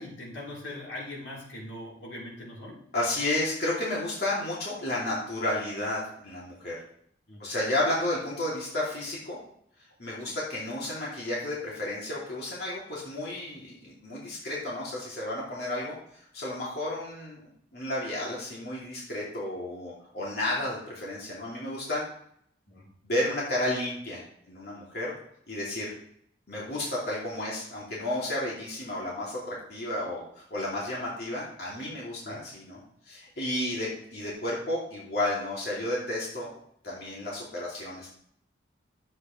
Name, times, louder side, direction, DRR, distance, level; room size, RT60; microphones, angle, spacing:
voice 1, 0.0-2.8 7.3-7.5 10.3-10.4 22.7-22.9 32.2-32.4, left 1 dB, 85° left, -4 dB, 3.8 m, -41 dB
voice 2, 2.9-6.7 7.4-9.4 10.0-17.4 17.7-22.0 22.8-25.1 25.5-25.9 26.5-32.8 33.1-36.5 36.8-38.1, left 1 dB, 55° left, -6 dB, 2.8 m, -32 dB
12.0 x 8.1 x 3.3 m, 0.67 s
head